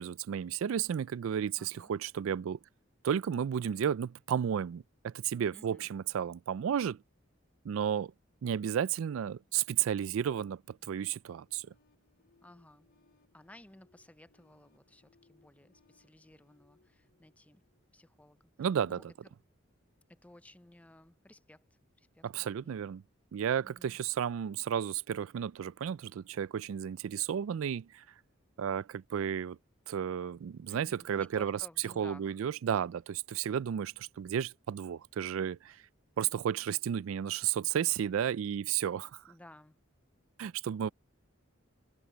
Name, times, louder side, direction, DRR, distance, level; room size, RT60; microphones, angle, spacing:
voice 1, 0.0-2.6 3.0-7.0 7.6-8.1 8.4-11.7 18.6-19.1 22.2-23.0 23.3-28.0 28.6-29.6 29.9-35.8 36.2-39.2 40.4-40.9, right 8 dB, 75° right, 0.3 m, -33 dB
voice 2, 1.6-1.9 5.5-5.9 12.4-12.9 13.3-17.6 17.9-18.5 18.9-19.1 20.1-21.6 22.0-22.2 22.6-22.8 23.6-24.0 30.7-32.4 39.3-39.8, left 1 dB, 5° left, 0.5 m, -56 dB
sound 1, 11.5-18.2, left 3 dB, 50° left, 3.9 m, -70 dB
head